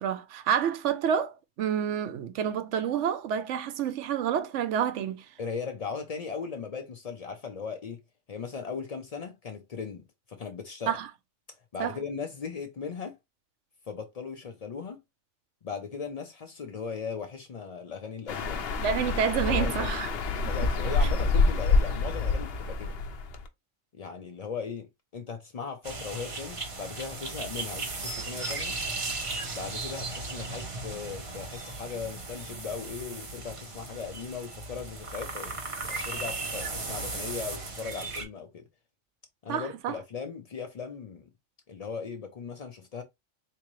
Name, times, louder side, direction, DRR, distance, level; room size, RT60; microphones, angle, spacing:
voice 1, 0.0-1.3 1.6-5.2 10.9-11.1 11.8-12.0 18.8-20.1 39.5-40.0, right 8 dB, 70° right, 0.8 m, -28 dB
voice 2, 5.4-8.0 8.3-11.0 11.7-13.2 13.9-15.0 15.6-18.7 19.5-19.9 20.4-22.9 23.9-28.8 29.5-38.6 39.4-41.3 41.7-43.0, left 5 dB, 85° left, 0.3 m, -38 dB
sound 1, 18.3-23.5, left 3 dB, 60° left, 0.7 m, -27 dB
sound 2, 25.8-38.2, right 3 dB, 35° right, 0.5 m, -36 dB
3.7 x 2.8 x 3.0 m
omnidirectional pair, 1.4 m